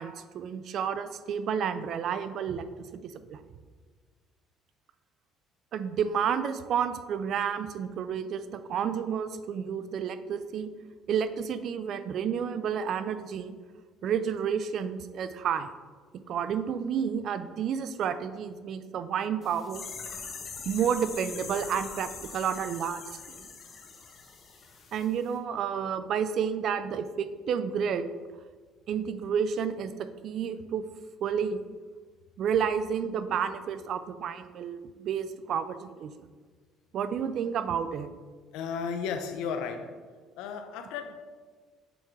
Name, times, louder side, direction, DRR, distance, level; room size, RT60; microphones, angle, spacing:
voice 1, 0.0-2.6 2.9-3.4 5.7-10.7 11.1-13.6 14.0-15.7 16.1-19.8 20.6-23.0 23.4-23.5 24.9-28.1 28.9-30.8 31.2-31.6 32.4-36.1 36.9-38.1, right 7 dB, 55° right, 12 dB, 0.4 m, -30 dB
sound 1, 19.4-25.1 25.3-25.4, left 5 dB, 45° left, 1.1 m, -42 dB
voice 2, 38.5-39.9 40.4-41.2, left 6 dB, 85° left, 7 dB, 0.6 m, -34 dB
7.0 x 3.7 x 4.5 m, 1.5 s
cardioid pair, 115°, 0 cm